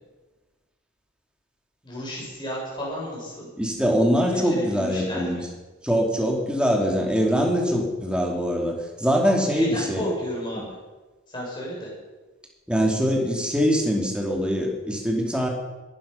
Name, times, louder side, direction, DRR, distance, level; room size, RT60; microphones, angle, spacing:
voice 1, 1.8-3.5 4.3-5.4 9.5-10.7 11.3-11.9, equal, 20° left, -4 dB, 7.0 m, -32 dB
voice 2, 3.6-5.4 5.8-10.0 10.6-10.7 12.7-15.5, equal, 5° right, 0 dB, 2.7 m, -23 dB
21.0 x 12.0 x 5.7 m, 1.2 s
head